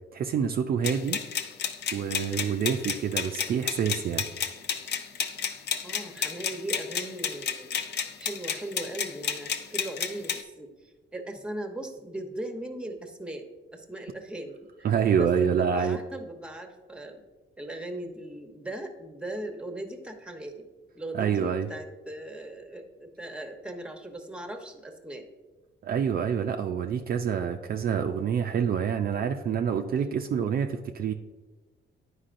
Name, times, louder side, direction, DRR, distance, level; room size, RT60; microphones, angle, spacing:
voice 1, 0.1-1.2 1.9-4.3 14.8-16.0 21.1-21.7 25.8-31.1, right 7 dB, 50° right, 5 dB, 0.4 m, -27 dB
sound 1, 0.8-10.4, left 7 dB, 60° left, 0.5 m, -32 dB
voice 2, 5.8-7.7 8.2-13.5 13.7-14.9 15.1-17.2 17.6-20.7 20.9-25.3, right 1 dB, 5° right, 5 dB, 0.8 m, -39 dB
9.8 x 4.7 x 2.5 m, 1.3 s
cardioid pair, 90°, 20 cm